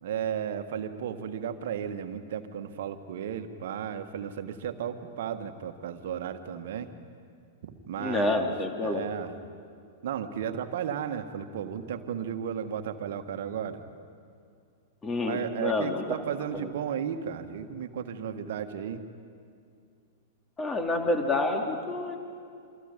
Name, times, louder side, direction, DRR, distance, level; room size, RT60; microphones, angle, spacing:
voice 1, 0.0-6.9 7.6-8.5 8.8-9.3 10.0-13.8 15.2-19.0, right 8 dB, 55° right, 8 dB, 1.6 m, -34 dB
voice 2, 8.0-9.1 15.0-16.0 16.5-16.7 20.6-22.2, left 2 dB, 15° left, 3 dB, 2.8 m, -28 dB
28.5 x 25.0 x 5.3 m, 2.3 s
figure-of-eight pair, 100°, 0 cm